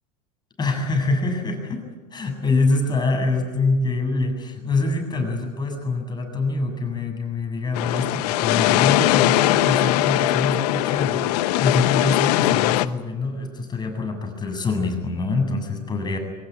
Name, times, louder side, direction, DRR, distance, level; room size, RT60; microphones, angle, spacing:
voice 1, 0.6-16.2, left 3 dB, 20° left, 4 dB, 7.8 m, -25 dB
sound 1, 7.8-12.9, left 15 dB, 75° left, 1.1 m, -20 dB
23.5 x 20.0 x 9.9 m, 1.2 s
hypercardioid pair, 105°, 21 cm